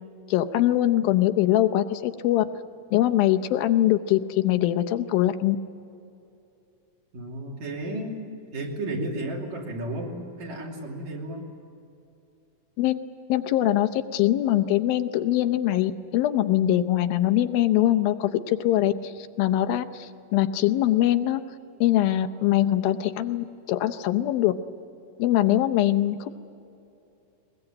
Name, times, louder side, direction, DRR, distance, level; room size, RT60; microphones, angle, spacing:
voice 1, 0.3-2.5 2.9-5.6 12.8-13.0 13.3-19.1 19.4-21.4 21.8-24.5 25.2-26.3, left 13 dB, 90° left, 9 dB, 2.7 m, -22 dB
voice 2, 7.1-8.3 8.5-11.5, right 1 dB, 55° right, -1 dB, 4.2 m, -33 dB
21.5 x 21.0 x 8.9 m, 2.7 s
omnidirectional pair, 4.1 m